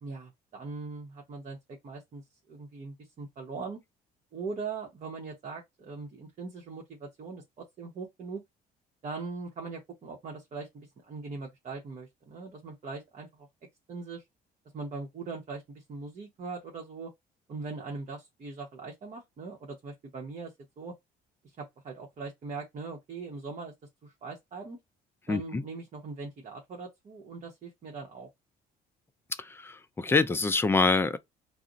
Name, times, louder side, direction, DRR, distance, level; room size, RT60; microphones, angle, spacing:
voice 1, 0.0-2.2 2.5-3.8 4.3-8.4 9.0-13.5 13.9-14.2 14.7-17.1 17.5-20.9 21.6-23.7 24.0-24.8 25.3-28.3, right 4 dB, 45° right, 0.8 m, -41 dB
voice 2, 25.3-25.6 29.4-31.2, left 3 dB, 15° left, 0.3 m, -26 dB
2.4 x 2.0 x 3.8 m
cardioid pair, 110°, 17 cm